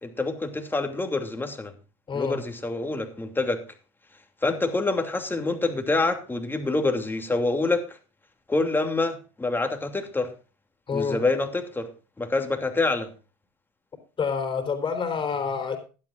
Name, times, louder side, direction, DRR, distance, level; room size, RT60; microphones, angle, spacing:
voice 1, 0.0-1.7 2.1-3.6 4.4-8.0 8.5-10.3 10.9-11.9 12.2-13.1, left 3 dB, 10° left, 5 dB, 2.8 m, -26 dB
voice 2, 2.1-2.4 10.9-11.2 14.2-15.8, left 6 dB, 30° left, 7 dB, 4.1 m, -27 dB
16.0 x 12.0 x 2.5 m, 0.34 s
hypercardioid pair, 95°, 18 cm